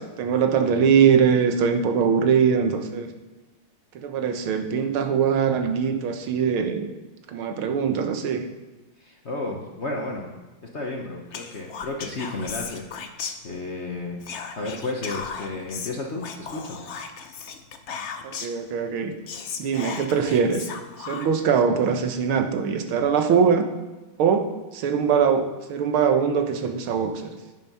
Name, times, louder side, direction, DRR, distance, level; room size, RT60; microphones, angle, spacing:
voice 1, 0.0-3.1 4.0-6.9 7.3-8.5 18.2-19.1 19.6-20.7 21.0-23.7 24.2-27.4, right 6 dB, 80° right, 6 dB, 1.8 m, -22 dB
voice 2, 9.0-10.3 10.7-12.9 13.4-14.2 14.5-16.8, left 2 dB, 45° left, 0 dB, 1.0 m, -32 dB
Whispering, 11.3-13.8 14.2-18.6 19.0-19.1 19.3-21.5, left 6 dB, 90° left, 0.6 m, -36 dB
10.0 x 7.3 x 5.5 m, 1.2 s
omnidirectional pair, 2.3 m